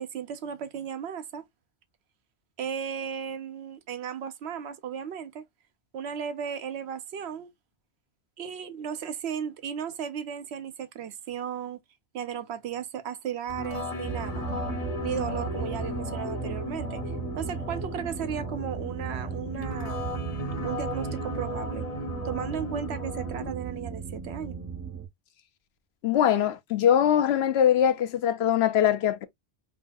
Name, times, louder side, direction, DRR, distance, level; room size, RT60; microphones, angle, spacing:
voice 1, 0.0-1.4 2.6-5.4 5.9-7.5 8.4-11.8 12.1-14.5 15.0-17.0 17.4-20.1 20.6-21.9 22.2-24.6, right 8 dB, 75° right, 0.9 m, -35 dB
sound 1, 13.5-23.5, left 2 dB, 40° left, 0.8 m, -36 dB
sound 2, 14.0-25.1, right 7 dB, 25° right, 0.3 m, -36 dB
voice 2, 26.0-29.3, left 10 dB, 75° left, 0.8 m, -22 dB
4.6 x 2.4 x 2.5 m
omnidirectional pair, 1.1 m